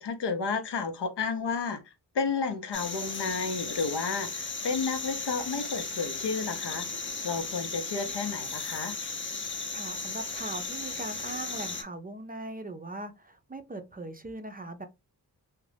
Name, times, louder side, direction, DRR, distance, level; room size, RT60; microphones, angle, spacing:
voice 1, 0.0-6.9 7.2-9.0, left 5 dB, 85° left, 0.7 m, -32 dB
sound 1, 2.7-11.8, left 4 dB, 30° left, 0.6 m, -36 dB
voice 2, 9.7-14.9, right 2 dB, 25° right, 0.4 m, -40 dB
2.4 x 2.1 x 3.2 m
wide cardioid pair, 80°, 40 cm